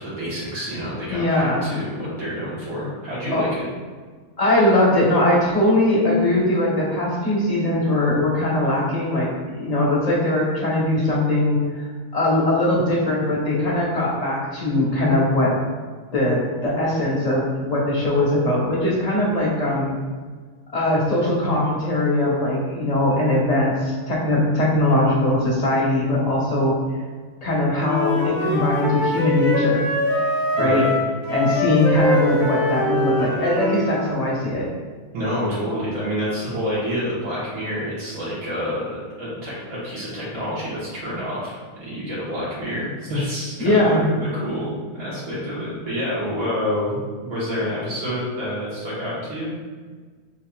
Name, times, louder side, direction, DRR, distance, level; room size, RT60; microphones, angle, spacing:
voice 1, 0.0-3.6 30.6-30.9 35.1-49.6, equal, 65° right, -9 dB, 1.8 m, -28 dB
voice 2, 1.1-1.7 3.3-3.5 4.4-11.8 12.1-15.6 16.1-20.0 20.7-26.8 27.4-29.8 30.6-30.8 31.3-34.7 43.6-44.1, left 1 dB, 30° left, -5 dB, 1.0 m, -20 dB
Wind instrument woodwind instrument, 27.8-34.1, left 1 dB, 45° left, 0.6 m, -23 dB
7.0 x 2.7 x 2.3 m, 1.5 s
omnidirectional pair, 1.6 m